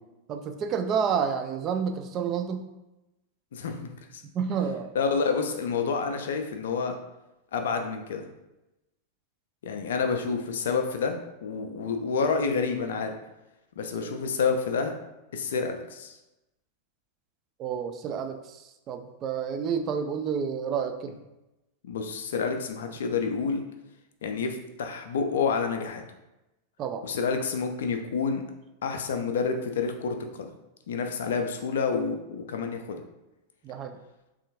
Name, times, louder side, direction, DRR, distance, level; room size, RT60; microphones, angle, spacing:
voice 1, 0.3-2.7 4.3-4.9 14.1-14.2 17.6-21.1 26.8-27.0 33.6-34.0, right 7 dB, 30° right, 7 dB, 0.3 m, -29 dB
voice 2, 3.5-4.2 5.0-6.9 7.5-8.2 9.6-13.1 13.8-14.9 15.3-16.1 21.8-23.6 24.2-26.0 27.0-28.4 28.8-30.5 30.9-33.0, left 5 dB, 60° left, 5 dB, 0.4 m, -29 dB
3.4 x 2.4 x 2.8 m, 0.97 s
figure-of-eight pair, 90°, 0 cm